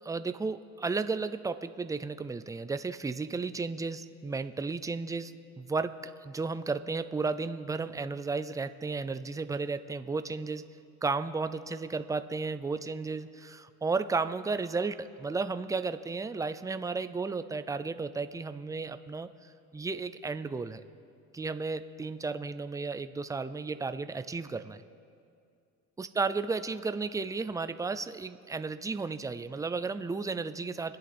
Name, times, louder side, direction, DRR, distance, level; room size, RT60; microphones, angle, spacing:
voice 1, 0.0-10.6 11.0-19.3 19.7-20.8 21.3-24.8 26.0-31.0, right 4 dB, 10° right, 11 dB, 0.4 m, -33 dB
26.0 x 10.5 x 4.3 m, 2.5 s
cardioid pair, 140°, 32 cm